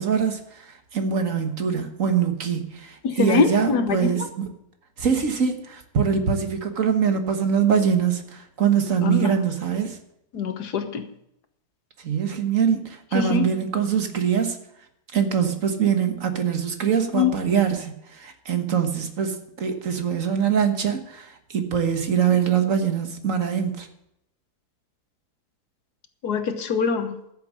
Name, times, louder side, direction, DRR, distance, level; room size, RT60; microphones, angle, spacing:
voice 1, 0.0-4.5 5.0-10.0 12.0-14.6 15.1-23.9, right 7 dB, 55° right, 6 dB, 1.7 m, -23 dB
voice 2, 3.0-4.3 9.0-9.4 10.3-11.1 13.1-13.5 17.1-17.3 26.2-27.1, left 5 dB, 90° left, 8 dB, 1.7 m, -23 dB
13.5 x 7.4 x 7.6 m, 0.79 s
omnidirectional pair, 1.7 m